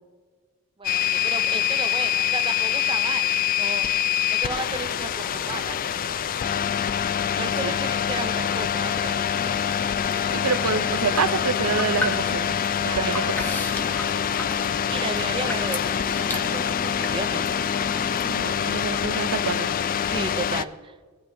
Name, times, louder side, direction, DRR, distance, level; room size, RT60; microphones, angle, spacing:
sound 1, 0.8-20.6, left 9 dB, 40° left, 0.3 m, -25 dB
voice 1, 0.8-3.9 4.3-5.8 7.4-9.2 12.8-13.6 14.9-17.6 20.1-21.0, right 4 dB, 25° right, 10 dB, 0.5 m, -34 dB
voice 2, 7.4-7.7 10.3-12.6 12.8-13.2 18.2-19.7, right 6 dB, 75° right, 13 dB, 0.6 m, -27 dB
sound 2, 9.2-18.5, left 1 dB, 10° left, 0.9 m, -37 dB
16.5 x 9.3 x 2.7 m, 1.5 s
head